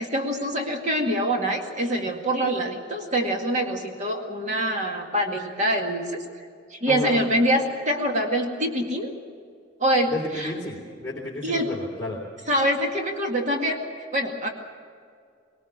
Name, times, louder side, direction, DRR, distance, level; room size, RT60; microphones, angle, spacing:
voice 1, 0.0-6.2 6.7-9.1 9.8-10.5 11.4-11.7 12.5-13.8 14.1-14.5, equal, 40° right, 2 dB, 2.1 m, -25 dB
voice 2, 6.9-7.2 10.1-12.2, left 2 dB, 10° left, -6 dB, 3.6 m, -32 dB
21.0 x 19.5 x 7.3 m, 2.2 s
head